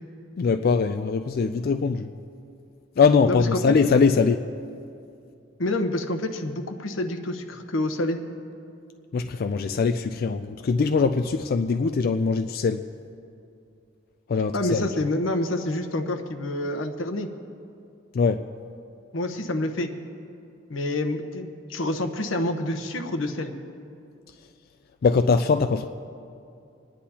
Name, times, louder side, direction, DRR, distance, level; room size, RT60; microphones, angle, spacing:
voice 1, 0.4-2.1 3.0-4.5 9.1-12.9 14.3-14.9 18.1-18.5 25.0-25.9, left 5 dB, 50° left, 7 dB, 0.3 m, -22 dB
voice 2, 3.3-3.6 5.6-8.2 14.5-17.3 19.1-19.9 20.7-23.5, left 1 dB, 85° left, 5 dB, 1.0 m, -27 dB
26.5 x 10.0 x 2.8 m, 2.6 s
head